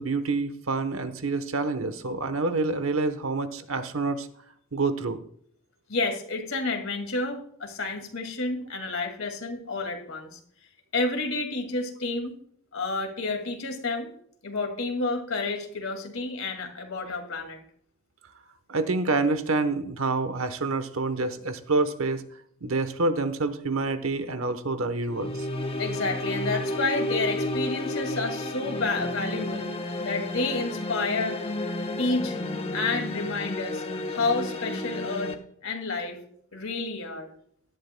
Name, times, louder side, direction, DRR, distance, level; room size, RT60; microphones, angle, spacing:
voice 1, 0.0-4.3 4.7-5.2 18.7-22.2 22.6-25.5, right 3 dB, 75° right, 11 dB, 1.0 m, -27 dB
voice 2, 5.9-10.4 10.9-12.4 12.7-14.1 14.4-17.6 25.8-29.7 30.0-31.4 32.0-32.4 32.7-33.8 34.1-35.3 35.6-36.2 36.5-37.3, left 3 dB, 75° left, 5 dB, 2.2 m, -30 dB
sound 1, 25.1-35.3, left 1 dB, 30° left, 1.0 m, -32 dB
17.0 x 11.5 x 2.2 m, 0.65 s
head